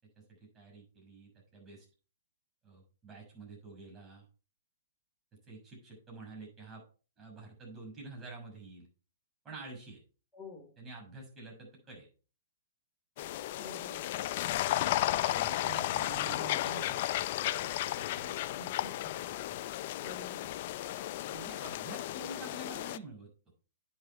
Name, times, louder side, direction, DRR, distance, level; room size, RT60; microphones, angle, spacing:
voice 1, 0.1-1.8 2.6-4.2 5.5-6.8 7.2-8.9 9.4-10.0 10.8-12.1 15.1-18.4 20.8-20.9 21.3-23.3, right 3 dB, 20° right, -1 dB, 6.4 m, -48 dB
voice 2, 10.3-10.7 13.6-14.0 18.5-19.3 20.0-20.5, left 3 dB, 15° left, -1 dB, 2.8 m, -49 dB
sound 1, 13.2-23.0, left 14 dB, 50° left, 0.4 m, -34 dB
9.6 x 7.1 x 4.4 m, 0.38 s
hypercardioid pair, 140°, 0 cm